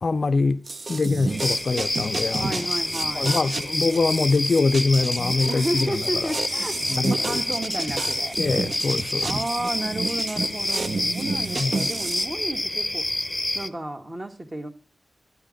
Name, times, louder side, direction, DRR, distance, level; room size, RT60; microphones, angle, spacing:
voice 1, 0.0-0.6 0.9-2.7 3.2-6.0 6.9-7.4 8.4-9.3 11.6-11.9, left 3 dB, 60° left, 0.5 m, -24 dB
sound 1, 0.7-12.3, right 3 dB, 55° right, 0.8 m, -32 dB
sound 2, 1.3-13.7, left 1 dB, 15° left, 0.8 m, -28 dB
voice 2, 2.3-3.4 5.5-8.4 9.2-13.3 13.5-14.7, right 1 dB, 30° right, 1.6 m, -32 dB
12.5 x 9.6 x 5.1 m
wide cardioid pair, 80°, 0 cm